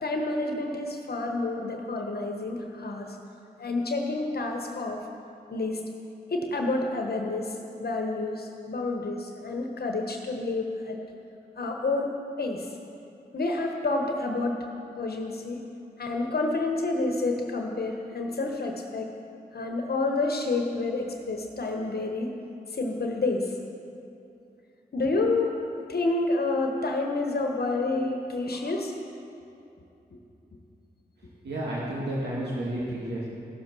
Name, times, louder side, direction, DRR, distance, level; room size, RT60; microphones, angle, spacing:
voice 1, 0.0-3.2 3.6-5.0 5.5-5.8 6.3-11.0 11.6-12.7 13.3-14.6 15.0-15.6 16.0-19.1 19.5-22.4 22.7-23.5 24.9-25.6 25.9-28.9 30.1-30.2, left 2 dB, 65° left, 2 dB, 1.2 m, -29 dB
voice 2, 31.4-33.3, right 1 dB, 80° right, -6 dB, 2.1 m, -31 dB
15.0 x 6.6 x 6.2 m, 2.7 s
cardioid pair, 45°, 17 cm